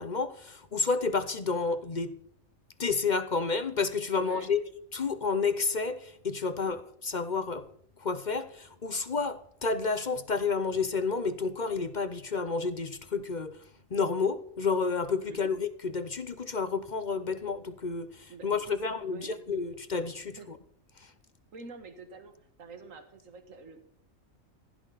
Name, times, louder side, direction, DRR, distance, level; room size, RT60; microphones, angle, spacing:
voice 1, 0.0-2.1 2.8-4.6 4.9-7.7 8.0-13.6 13.9-20.6 21.0-21.1, left 4 dB, 40° left, 0.8 m, -30 dB
voice 2, 4.2-4.6 6.6-6.7 15.3-15.5 18.3-19.4 20.4-20.5 21.5-22.3 22.6-23.8, right 4 dB, 70° right, 2.0 m, -46 dB
16.0 x 15.5 x 4.1 m
omnidirectional pair, 1.4 m